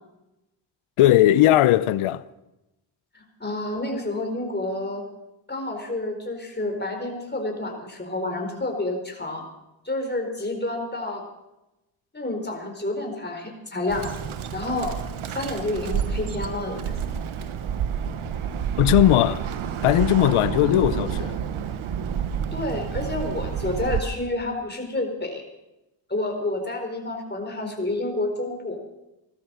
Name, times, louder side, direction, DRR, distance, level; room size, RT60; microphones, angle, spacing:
voice 1, 1.0-2.2 18.8-19.4 19.8-21.4, left 13 dB, 85° left, 0.7 m, -18 dB
voice 2, 3.1-5.0 5.5-9.4 9.8-11.2 12.1-14.1 14.5-15.0 15.3-16.9 22.5-25.4 26.1-28.8, left 2 dB, 20° left, 4.4 m, -29 dB
Bird, 13.9-24.0, right 8 dB, 75° right, 1.3 m, -29 dB
16.5 x 13.0 x 6.3 m
supercardioid pair, 45°, 49 cm